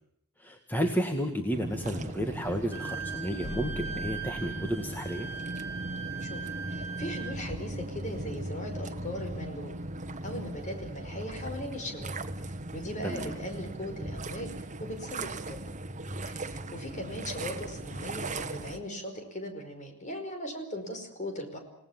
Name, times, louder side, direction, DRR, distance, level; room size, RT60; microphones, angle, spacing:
voice 1, 0.4-5.3 13.0-13.3, equal, 10° left, 3 dB, 1.9 m, -32 dB
sound 1, 1.5-18.8, right 1 dB, 35° right, 1.4 m, -38 dB
Wind instrument woodwind instrument, 2.7-7.4, right 7 dB, 10° right, 2.1 m, -40 dB
sound 2, 3.4-5.3, left 1 dB, 55° left, 1.0 m, -43 dB
voice 2, 6.2-9.8 10.2-12.1 12.4-15.6 16.2-21.6, left 1 dB, 35° left, 5 dB, 5.1 m, -39 dB
29.0 x 18.5 x 7.4 m, 0.74 s
head